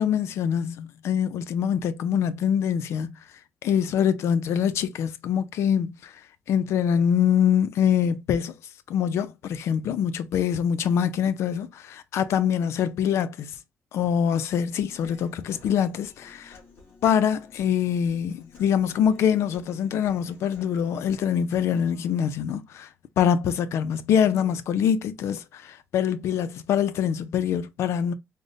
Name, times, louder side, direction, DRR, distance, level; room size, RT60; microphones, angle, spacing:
voice 1, 0.0-6.2 6.5-8.6 8.9-13.6 13.9-16.6 17.0-28.1, left 8 dB, 80° left, 0.4 m, -24 dB
Human voice, 14.0-22.0, left 3 dB, 60° left, 2.3 m, -53 dB
5.0 x 2.0 x 2.6 m
cardioid pair, 120°, 5 cm